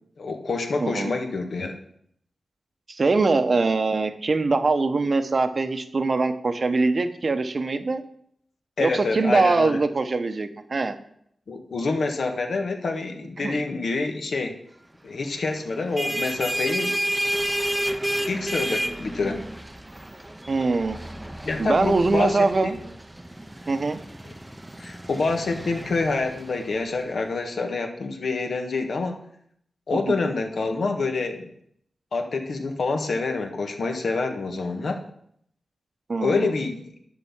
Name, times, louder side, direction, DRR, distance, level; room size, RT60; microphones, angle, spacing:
voice 1, 0.2-1.8 8.8-9.8 11.5-14.6 15.0-17.0 18.3-19.4 21.4-22.7 24.8-29.2 29.9-31.5 32.1-35.0 36.2-36.9, left 3 dB, 70° left, 4 dB, 1.4 m, -27 dB
voice 2, 0.8-1.1 2.9-8.0 8.8-10.9 13.4-13.6 20.5-21.0 21.6-22.8 23.7-24.0 36.1-36.5, right 3 dB, 45° right, 9 dB, 0.8 m, -23 dB
sound 1, 15.7-27.0, right 1 dB, 10° right, 0.6 m, -31 dB
11.0 x 4.1 x 7.2 m, 0.69 s
wide cardioid pair, 110°, 0 cm